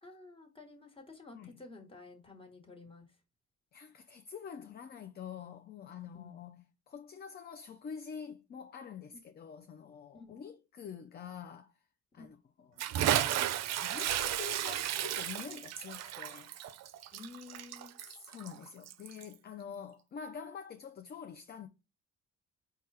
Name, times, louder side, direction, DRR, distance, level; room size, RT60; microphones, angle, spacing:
voice 1, 0.0-3.1 6.1-6.4 10.1-10.4 12.2-12.3 17.1-18.0, left 3 dB, 20° left, 1.3 m, -51 dB
voice 2, 3.7-11.7 12.1-12.9 13.8-16.5 18.0-21.7, left 7 dB, 35° left, 0.4 m, -46 dB
Bathtub (filling or washing) / Splash splatter, 12.8-19.3, right 11 dB, 60° right, 0.5 m, -34 dB
4.3 x 2.3 x 4.7 m
cardioid pair, 90°, 30 cm